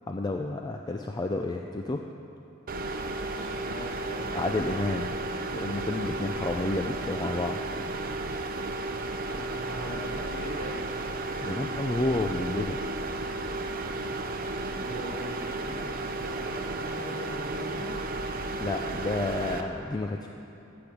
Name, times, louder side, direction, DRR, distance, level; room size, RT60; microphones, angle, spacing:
voice 1, 0.1-2.0 4.3-5.1 5.5-7.7 11.4-12.8 18.6-20.3, left 2 dB, 20° left, 3 dB, 0.4 m, -30 dB
sound 1, 2.7-19.6, right 2 dB, 45° right, 0.6 m, -33 dB
voice 2, 3.2-4.4 9.2-10.8 14.6-17.9, equal, 50° left, -6 dB, 2.3 m, -41 dB
14.5 x 5.2 x 7.0 m, 3.0 s
head